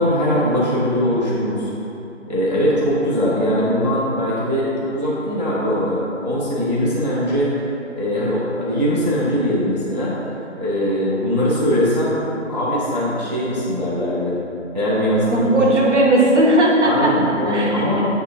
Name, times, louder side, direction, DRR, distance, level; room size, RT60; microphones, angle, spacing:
voice 1, 0.0-1.7 2.3-7.5 8.0-10.2 10.6-12.2 12.5-14.3 14.7-15.7 16.8-18.1, equal, 35° right, -7 dB, 0.4 m, -21 dB
voice 2, 15.3-18.1, right 1 dB, 70° right, -2 dB, 0.9 m, -17 dB
6.5 x 2.7 x 2.4 m, 2.9 s
figure-of-eight pair, 165°, 37 cm